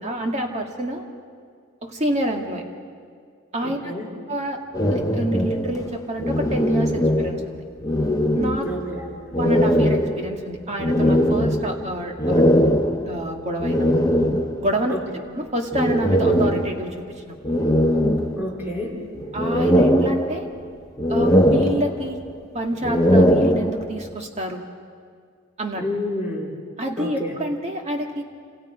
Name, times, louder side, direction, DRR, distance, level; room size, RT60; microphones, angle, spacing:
voice 1, 0.0-1.1 1.8-2.6 3.5-3.9 4.3-4.6 4.9-7.6 8.3-8.7 8.9-9.0 9.3-12.4 12.9-13.9 14.6-15.0 15.3-17.0 17.3-17.4 19.3-20.5 21.1-22.2 22.5-24.6 25.6-25.8 26.8-28.2, right 1 dB, 30° right, 2 dB, 2.1 m, -27 dB
voice 2, 3.6-4.1 8.6-9.1 14.9-15.0 18.4-19.0 25.8-26.6 27.0-27.3, left 1 dB, 10° right, -3 dB, 4.3 m, -29 dB
sound 1, 4.7-7.6 7.8-8.9 9.3-14.8 15.7-17.0 17.4-18.8 19.2-20.7 21.0-22.3 22.7-24.1, equal, 15° left, 0.9 m, -20 dB
28.0 x 26.5 x 5.2 m, 2.1 s
head